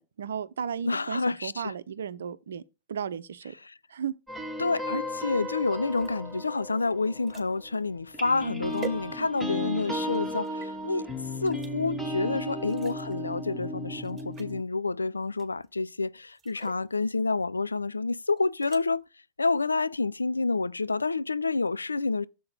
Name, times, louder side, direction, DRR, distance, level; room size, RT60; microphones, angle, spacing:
voice 1, 0.0-2.6 2.9-3.5 3.9-4.1 12.2-12.4, right 7 dB, 65° right, 0.7 m, -35 dB
voice 2, 0.9-1.7 3.6-3.7 4.6-11.1 11.4-19.1 19.4-22.3, left 3 dB, 80° left, 0.4 m, -28 dB
sound 1, 4.3-7.7 8.1-14.6, left 1 dB, 5° left, 2.8 m, -35 dB
sound 2, 5.9-9.6 10.1-10.7 11.4-11.7 12.6-13.2 13.6-13.7 14.0-14.6 15.4-15.8 16.3-16.9 18.4-18.8, right 7 dB, 15° right, 2.1 m, -46 dB
7.6 x 5.7 x 3.8 m
figure-of-eight pair, 90°, 0 cm